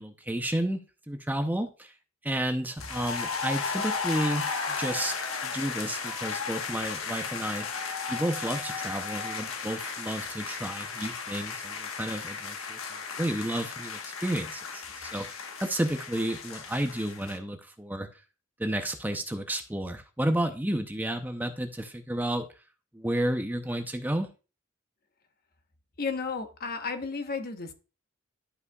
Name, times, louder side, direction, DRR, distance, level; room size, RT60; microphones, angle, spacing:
voice 1, 0.0-1.9 2.2-5.1 5.4-7.7 8.1-12.8 13.2-18.1 18.6-22.5 22.9-24.3, right 1 dB, 10° right, 0.6 m, -31 dB
sound 1, 2.8-17.4, left 5 dB, 85° left, 1.3 m, -35 dB
voice 2, 26.0-27.7, left 4 dB, 50° left, 1.0 m, -33 dB
12.0 x 5.5 x 2.3 m
head